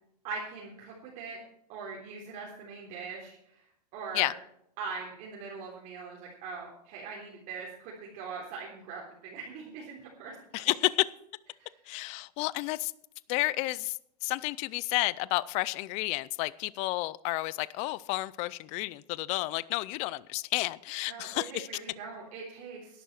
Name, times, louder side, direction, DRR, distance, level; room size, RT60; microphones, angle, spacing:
voice 1, 0.2-1.4 1.7-3.4 3.9-4.3 4.8-10.4 11.6-11.8 21.1-23.0, right 4 dB, 40° right, -4 dB, 3.6 m, -41 dB
voice 2, 10.5-10.9 11.9-12.9 13.3-14.0 14.2-21.7, left 20 dB, 30° left, 20 dB, 0.4 m, -31 dB
13.0 x 11.5 x 4.5 m, 0.74 s
hypercardioid pair, 140°, 21 cm